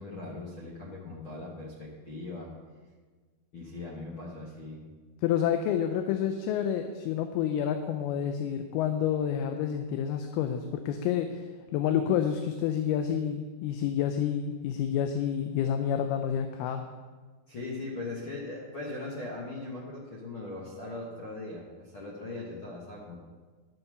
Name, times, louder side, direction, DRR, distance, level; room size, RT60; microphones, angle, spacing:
voice 1, 0.0-2.5 3.5-4.8 17.5-23.2, left 2 dB, 55° left, -4 dB, 1.5 m, -39 dB
voice 2, 5.2-11.4 11.7-16.8, left 9 dB, 90° left, 7 dB, 2.6 m, -29 dB
10.5 x 7.1 x 6.7 m, 1.4 s
omnidirectional pair, 4.4 m